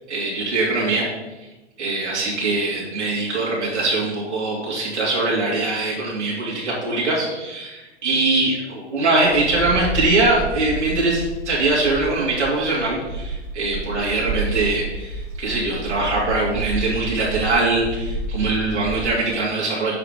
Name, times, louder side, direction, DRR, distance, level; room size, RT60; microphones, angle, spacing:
voice 1, 0.1-1.0 1.8-20.0, right 2 dB, 80° right, -6 dB, 2.5 m, -22 dB
Wind, 9.2-19.2, right 2 dB, 45° right, 2.0 m, -30 dB
6.9 x 4.8 x 5.1 m, 1.1 s
hypercardioid pair, 125°, 34 cm